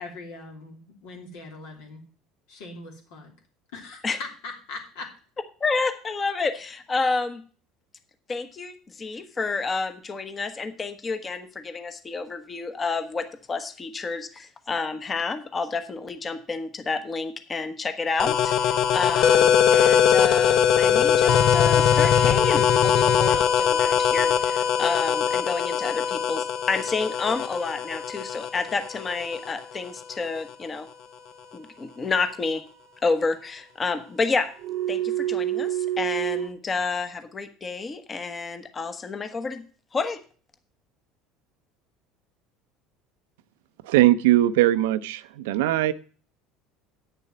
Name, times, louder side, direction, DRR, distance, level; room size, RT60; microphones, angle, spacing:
voice 1, 0.0-2.0 2.5-3.3 3.7-5.1, left 3 dB, 75° left, 1 dB, 3.0 m, -40 dB
voice 2, 5.6-7.4 8.3-30.9 31.5-32.6 33.0-34.5 34.9-39.6 39.9-40.2, left 4 dB, 30° left, 9 dB, 1.2 m, -29 dB
sound 1, 18.1-18.2 20.3-24.1 24.4-25.4 26.1-26.9 27.5-28.4 28.6-29.6 34.4-36.5, right 13 dB, 60° right, 0.8 m, -34 dB
sound 2, 18.2-29.6, left 8 dB, 60° left, 0.8 m, -21 dB
voice 3, 43.9-45.9, right 15 dB, 80° right, 14 dB, 0.5 m, -20 dB
9.0 x 6.8 x 6.1 m, 0.41 s
supercardioid pair, 85°, 0 cm